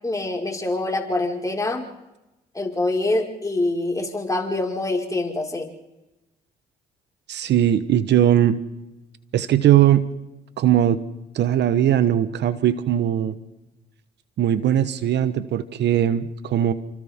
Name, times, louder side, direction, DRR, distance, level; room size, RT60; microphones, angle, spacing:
voice 1, 0.0-1.8 2.5-5.7, left 2 dB, 15° left, -1 dB, 5.3 m, -25 dB
voice 2, 7.3-8.6 9.3-10.0 10.6-11.0 11.3-13.3 14.4-16.7, right 11 dB, 65° right, 12 dB, 1.2 m, -19 dB
30.0 x 26.0 x 3.8 m, 1.0 s
supercardioid pair, 60°, 19 cm